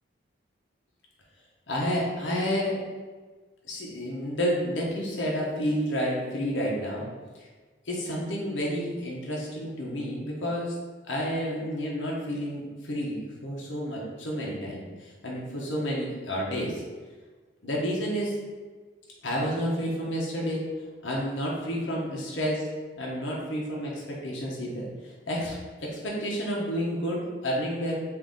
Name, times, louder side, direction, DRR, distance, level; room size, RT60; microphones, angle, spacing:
voice 1, 1.7-2.8 3.6-7.0 7.4-7.5 7.8-10.7 11.1-16.8 17.6-18.4 19.2-20.6 21.0-22.6 23.0-28.0, equal, 75° left, -4 dB, 0.9 m, -30 dB
3.9 x 2.6 x 3.6 m, 1.4 s
head